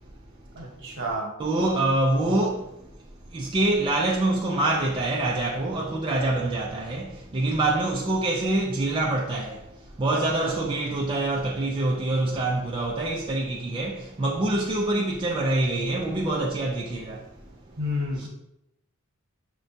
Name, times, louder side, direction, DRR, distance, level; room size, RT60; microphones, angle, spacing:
voice 1, 0.5-1.3 10.1-10.5 17.8-18.3, left 1 dB, 60° right, 0.9 m, -31 dB
voice 2, 1.4-2.8 3.3-17.3 18.2-18.3, right 2 dB, 25° right, 0.3 m, -25 dB
5.9 x 2.2 x 2.7 m
head